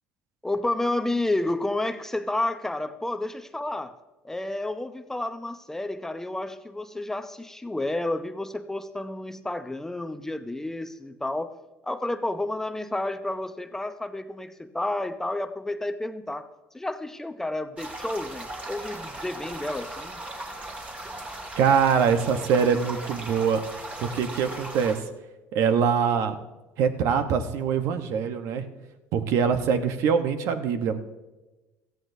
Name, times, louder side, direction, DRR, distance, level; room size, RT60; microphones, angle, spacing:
voice 1, 0.4-4.0 4.2-11.5 11.8-16.5 16.7-20.2, left 2 dB, 10° left, 10 dB, 0.6 m, -30 dB
sound 1, 17.8-25.0, right 2 dB, 25° right, 2.4 m, -38 dB
voice 2, 21.6-23.6 24.0-25.1 25.5-26.4 26.8-28.7 29.1-31.0, right 6 dB, 65° right, 8 dB, 1.1 m, -23 dB
17.0 x 14.0 x 2.7 m, 1.1 s
supercardioid pair, 110°, 5 cm